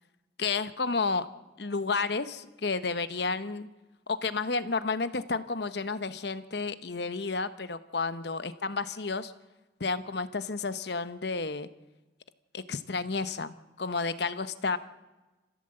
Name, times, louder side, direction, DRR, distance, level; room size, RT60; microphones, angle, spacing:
voice 1, 0.4-1.3 1.6-3.7 4.1-9.3 9.8-11.7 12.5-14.8, left 4 dB, 60° left, 13 dB, 0.9 m, -31 dB
28.0 x 15.5 x 7.8 m, 1.2 s
head